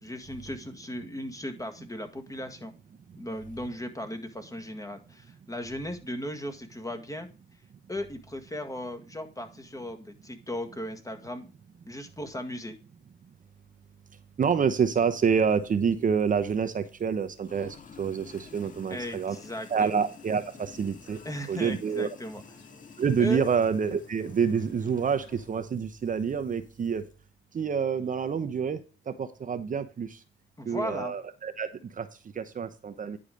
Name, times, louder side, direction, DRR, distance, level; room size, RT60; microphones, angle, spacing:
voice 1, 0.0-2.7 3.2-7.3 7.9-11.5 11.9-12.8 18.9-20.1 21.2-22.4 23.2-23.4 30.6-31.1, left 1 dB, 15° left, 7 dB, 1.8 m, -37 dB
voice 2, 14.4-19.4 19.7-21.2 21.5-22.1 23.0-27.1 27.5-28.8 29.1-30.2 30.7-31.7 32.0-32.1 32.3-33.2, right 6 dB, 40° right, 9 dB, 0.9 m, -27 dB
Sink (filling or washing), 14.8-27.1, left 5 dB, 40° left, 1.7 m, -53 dB
sound 1, 18.2-25.5, left 5 dB, 60° left, 2.7 m, -56 dB
10.5 x 4.9 x 5.2 m, 0.34 s
cardioid pair, 90°, 20 cm